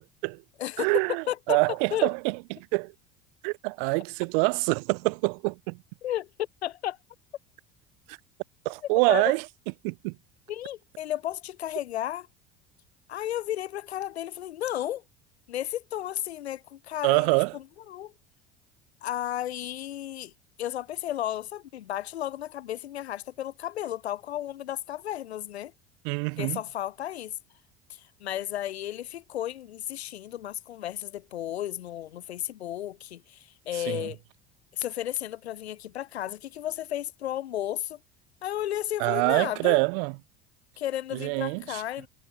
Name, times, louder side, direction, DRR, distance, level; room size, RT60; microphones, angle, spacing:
voice 1, 0.0-0.4 0.8-2.9 3.4-5.8 8.1-8.2 8.6-9.5 9.8-10.2 17.0-17.6 26.0-26.6 33.7-34.1 39.0-40.2 41.1-41.8, right 32 dB, 60° right, 0.5 m, -26 dB
voice 2, 1.3-1.6 1.9-2.1 6.0-6.3 6.6-7.0 9.1-9.2 10.5-12.3 13.1-15.0 15.5-17.3 17.9-18.1 19.0-20.3 20.6-25.7 26.4-27.4 27.9-34.2 34.7-38.0 38.4-39.8 40.8-42.1, left 12 dB, 90° left, 0.5 m, -33 dB
hypercardioid pair, 70°, 31 cm